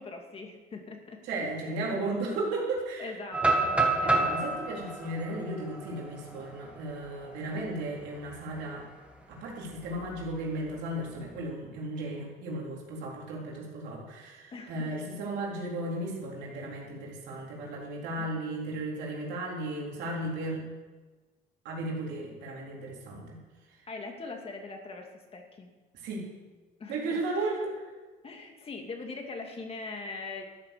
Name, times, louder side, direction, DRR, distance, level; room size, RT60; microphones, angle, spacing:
voice 1, 0.0-1.5 3.0-4.6 14.5-14.9 18.2-18.3 23.9-25.7 26.8-27.6 28.2-30.5, left 3 dB, 35° left, 3 dB, 2.4 m, -42 dB
voice 2, 1.2-3.1 4.0-8.9 9.3-20.6 21.6-23.4 25.9-26.2 26.9-27.9, right 2 dB, 85° right, -2 dB, 4.0 m, -35 dB
sound 1, 3.3-7.2 7.7-7.8 8.2-8.6 9.9-10.7, right 2 dB, 5° right, 1.9 m, -29 dB
13.5 x 9.0 x 6.8 m, 1.3 s
cardioid pair, 110°, 17 cm